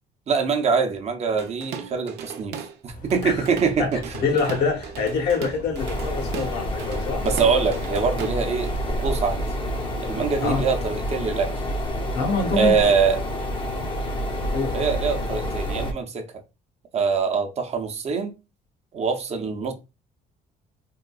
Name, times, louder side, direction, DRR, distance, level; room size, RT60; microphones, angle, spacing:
voice 1, 0.3-2.6 2.8-4.0 7.2-8.7 9.0-9.5 10.0-11.6 12.5-13.2 14.7-16.3 16.9-18.3 18.9-19.7, right 5 dB, 40° right, 0.6 m, -23 dB
Drum kit / Drum, 1.4-2.8 3.1-8.8, right 7 dB, 80° right, 0.6 m, -37 dB
sound 1, 2.9-10.4, right 1 dB, 55° left, 0.9 m, -42 dB
voice 2, 4.1-7.2 10.4-10.6 12.1-12.7 14.5-14.8, left 4 dB, 75° left, 1.1 m, -25 dB
sound 2, 5.8-15.9, equal, 30° left, 0.6 m, -28 dB
3.6 x 2.3 x 2.3 m
cardioid pair, 110°, 17 cm